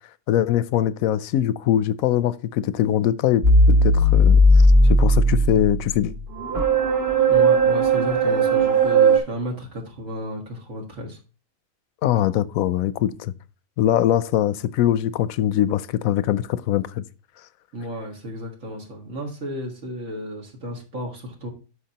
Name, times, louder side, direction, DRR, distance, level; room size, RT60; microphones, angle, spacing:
voice 1, 0.3-4.4 4.8-6.1 6.6-6.7 12.0-13.3 13.8-17.0, left 11 dB, 90° left, 1.0 m, -22 dB
sound 1, 3.4-9.2, right 1 dB, 50° right, 1.6 m, -17 dB
voice 2, 7.3-11.2 17.7-21.5, equal, 70° right, 2.1 m, -33 dB
12.5 x 4.9 x 2.9 m
omnidirectional pair, 1.4 m